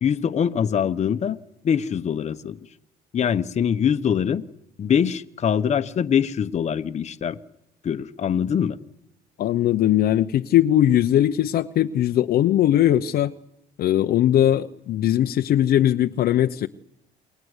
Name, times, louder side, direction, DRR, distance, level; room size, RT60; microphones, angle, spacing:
voice 1, 0.0-1.4 1.6-2.6 3.1-4.4 4.8-7.4 7.8-8.8, left 8 dB, 40° left, 9 dB, 1.2 m, -23 dB
voice 2, 9.4-13.3 13.8-16.7, left 12 dB, 65° left, 7 dB, 0.9 m, -20 dB
28.5 x 22.5 x 8.2 m, 0.89 s
cardioid pair, 110°, 17 cm